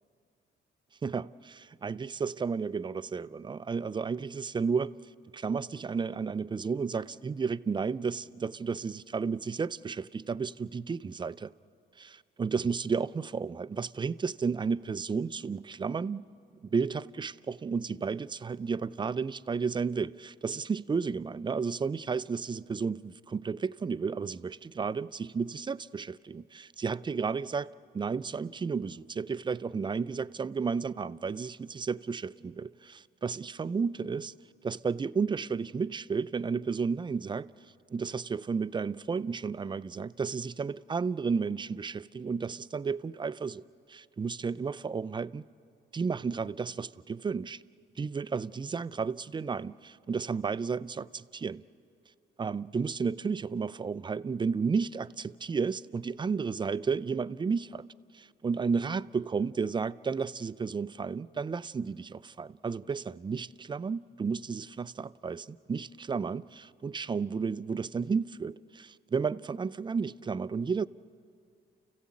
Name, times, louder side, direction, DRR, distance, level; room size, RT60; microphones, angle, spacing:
voice 1, 1.0-4.9 5.3-11.5 12.0-16.2 16.6-34.3 34.6-37.5 37.9-45.5 45.9-47.6 48.0-51.6 52.4-57.8 58.1-70.9, right 5 dB, 25° right, 0.5 m, -32 dB
29.5 x 15.5 x 8.5 m
cardioid pair, 90°, 20 cm